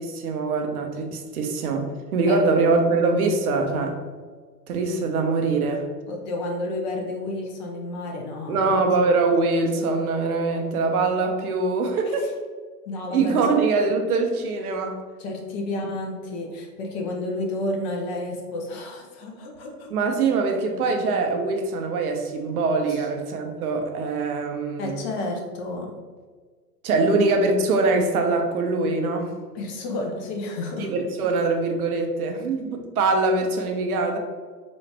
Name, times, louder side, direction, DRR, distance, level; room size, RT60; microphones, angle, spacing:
voice 1, 0.0-4.0 4.7-5.9 8.5-12.3 13.1-15.0 19.9-25.0 26.8-29.3 30.8-34.2, right 3 dB, 60° right, 4 dB, 0.8 m, -23 dB
voice 2, 6.1-8.8 12.0-12.2 12.9-13.6 15.2-19.9 22.9-23.0 24.8-25.9 29.5-30.9, left 2 dB, 30° left, 1 dB, 0.6 m, -31 dB
3.9 x 2.4 x 3.3 m, 1.5 s
hypercardioid pair, 115°, 49 cm